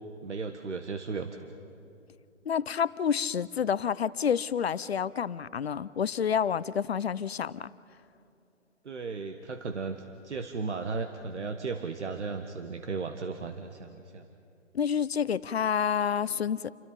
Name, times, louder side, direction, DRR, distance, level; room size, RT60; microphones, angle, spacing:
voice 1, 0.2-1.6 8.8-10.0 10.2-14.2, right 4 dB, 65° right, 7 dB, 1.5 m, -35 dB
voice 2, 2.5-7.7 14.7-16.7, left 7 dB, 55° left, 18 dB, 0.6 m, -29 dB
28.5 x 23.5 x 5.3 m, 2.7 s
figure-of-eight pair, 140°, 38 cm